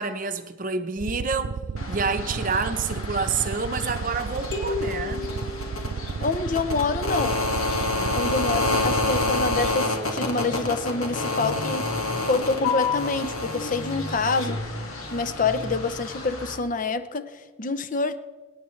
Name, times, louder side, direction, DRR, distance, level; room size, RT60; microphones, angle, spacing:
voice 1, 0.0-1.6 1.9-5.4 7.9-8.5, right 4 dB, 40° right, 0.8 m, -29 dB
sound 1, 1.0-9.7, right 5 dB, 70° right, 0.4 m, -33 dB
sound 2, 1.8-16.5, left 3 dB, 80° left, 2.0 m, -29 dB
sound 3, 4.5-6.4, left 3 dB, 55° left, 2.8 m, -33 dB
voice 2, 6.2-7.5 8.1-11.9 12.3-14.6 15.1-18.2, left 3 dB, 40° left, 0.6 m, -27 dB
25.5 x 9.6 x 3.2 m
head